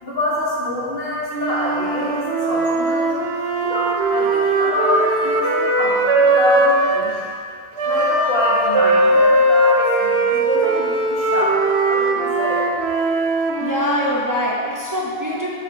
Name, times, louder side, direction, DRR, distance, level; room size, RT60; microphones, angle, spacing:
voice 1, 0.0-3.1 3.6-7.2 7.8-11.6 11.9-12.7, left 1 dB, 65° left, -7 dB, 1.7 m, -25 dB
Wind instrument woodwind instrument, 1.3-7.1 7.8-14.3, right 2 dB, 85° right, 1.0 m, -19 dB
voice 2, 13.6-15.5, left 1 dB, 20° right, -6 dB, 0.7 m, -23 dB
6.4 x 4.1 x 5.3 m, 2.5 s
omnidirectional pair, 1.0 m